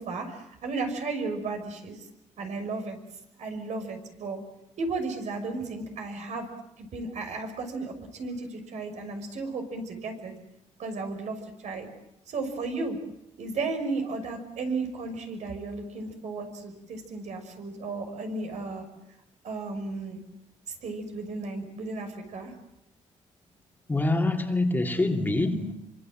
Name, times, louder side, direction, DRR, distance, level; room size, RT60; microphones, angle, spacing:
voice 1, 0.0-2.1 2.4-3.0 3.4-4.4 4.8-6.5 6.8-10.3 10.8-11.4 11.6-11.9 12.3-13.0 13.4-18.9 19.4-20.2 20.8-22.5, right 3 dB, 65° right, 6.0 m, -34 dB
voice 2, 23.9-25.7, left 2 dB, 15° left, 2.5 m, -25 dB
26.0 x 25.0 x 7.6 m
cardioid pair, 125°, 13 cm